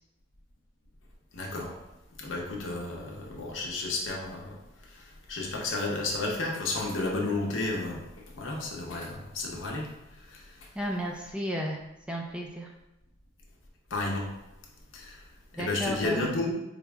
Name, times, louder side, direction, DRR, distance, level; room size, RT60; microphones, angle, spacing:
voice 1, 1.3-1.8 2.2-4.6 4.9-9.9 10.3-10.7 13.9-14.3 14.9-15.2 15.5-16.5, left 2 dB, 70° left, -1 dB, 0.8 m, -32 dB
voice 2, 10.8-11.8 12.1-12.7 15.6-16.3, equal, 5° right, 0 dB, 0.3 m, -33 dB
4.4 x 2.0 x 3.4 m, 0.91 s
head